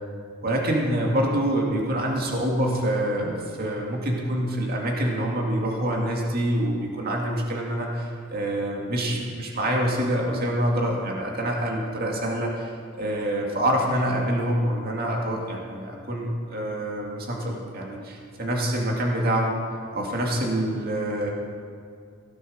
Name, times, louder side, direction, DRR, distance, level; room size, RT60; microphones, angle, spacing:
voice 1, 0.4-19.6 19.9-21.3, right 1 dB, 45° right, -1 dB, 2.2 m, -26 dB
16.5 x 9.1 x 6.3 m, 2.4 s
head